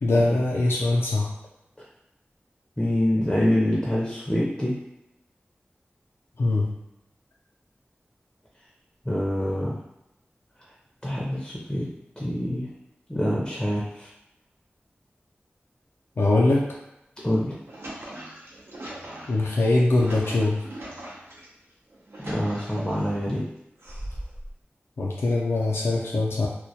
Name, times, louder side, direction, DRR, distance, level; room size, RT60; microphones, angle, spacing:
voice 1, 0.0-1.3 6.4-6.7 16.2-16.6 19.3-20.6 25.0-26.5, left 2 dB, 90° left, -3 dB, 0.4 m, -22 dB
voice 2, 2.8-4.8 9.0-9.8 11.0-11.9 12.2-12.7 13.1-14.1 17.2-17.6 22.2-23.4, left 1 dB, 15° left, -5 dB, 0.5 m, -25 dB
sound 1, 17.5-21.5 21.9-23.2 23.8-24.5, right 1 dB, 85° right, 0.6 m, -40 dB
2.2 x 2.1 x 2.7 m, 0.89 s
wide cardioid pair, 75°, 4 cm